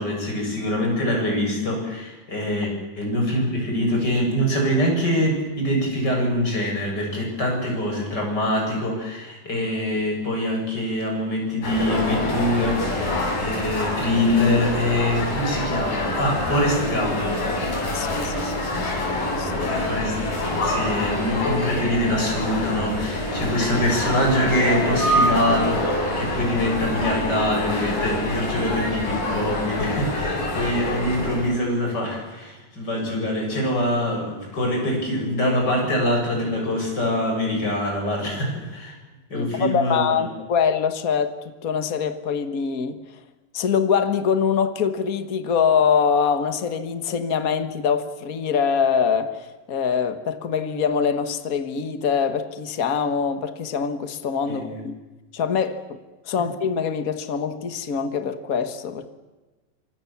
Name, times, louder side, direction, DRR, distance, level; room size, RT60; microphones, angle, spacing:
voice 1, 0.0-17.4 19.6-20.4 20.6-39.0 39.3-40.0 54.5-54.8, left 1 dB, 25° left, 7.8 m, -24 dB
sound 1, 11.6-31.5, left 1 dB, 65° left, 8.6 m, -26 dB
voice 2, 17.9-19.8 39.3-43.0 43.5-54.9 55.3-56.0 56.2-59.1, left 6 dB, 90° left, 0.7 m, -24 dB
28.0 x 25.0 x 7.3 m
omnidirectional pair, 4.1 m